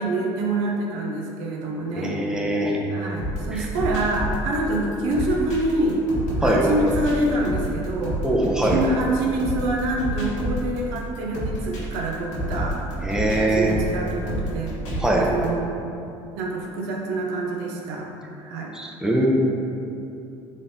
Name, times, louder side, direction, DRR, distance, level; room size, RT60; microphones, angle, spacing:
voice 1, 0.0-6.0 6.4-8.2 8.7-12.8 13.4-14.8 15.2-15.8 16.4-18.1 18.4-18.7, right 2 dB, 85° right, -1 dB, 0.6 m, -26 dB
voice 2, 1.9-2.8 3.5-3.7 6.4-6.7 8.2-8.8 13.0-13.7 15.0-15.3 18.7-19.3, right 1 dB, 5° right, -2 dB, 0.6 m, -22 dB
sound 1, 3.2-15.4, equal, 60° left, 1.4 m, -29 dB
4.0 x 3.3 x 2.7 m, 2.8 s
supercardioid pair, 80°, 14 cm